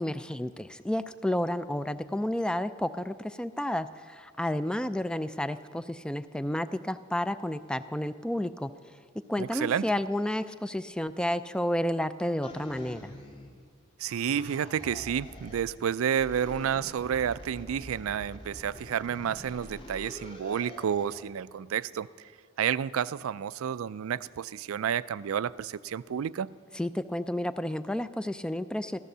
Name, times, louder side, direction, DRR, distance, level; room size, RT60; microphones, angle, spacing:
voice 1, 0.0-8.7 9.3-13.1 26.7-29.0, left 1 dB, 5° left, 13 dB, 0.3 m, -31 dB
voice 2, 9.4-9.9 14.0-22.1 22.6-26.5, right 8 dB, 85° right, 18 dB, 0.4 m, -30 dB
sound 1, 12.4-13.7 14.1-15.7 16.1-21.3, left 1 dB, 25° left, 1.7 m, -46 dB
14.5 x 14.0 x 6.7 m, 2.1 s
head